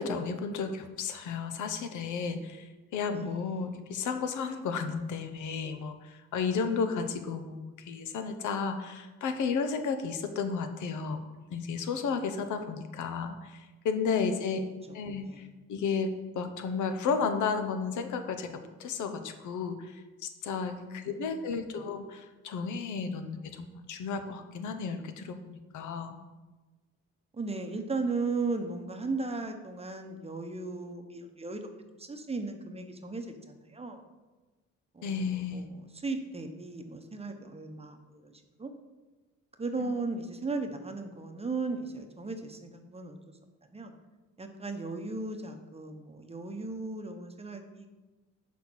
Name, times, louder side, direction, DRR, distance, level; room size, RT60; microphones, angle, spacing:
voice 1, 0.0-11.2 11.5-14.6 14.9-26.2 35.0-35.7 39.8-39.9, left 5 dB, 75° left, 8 dB, 0.8 m, -33 dB
voice 2, 3.1-3.7 14.3-14.4 15.2-15.4 20.7-21.5 27.3-31.6 31.9-34.0 34.9-38.7 39.6-43.2 43.7-43.9 44.4-47.9, right 3 dB, 20° right, 5 dB, 0.8 m, -36 dB
5.7 x 4.1 x 6.2 m, 1.2 s
cardioid pair, 90°, 30 cm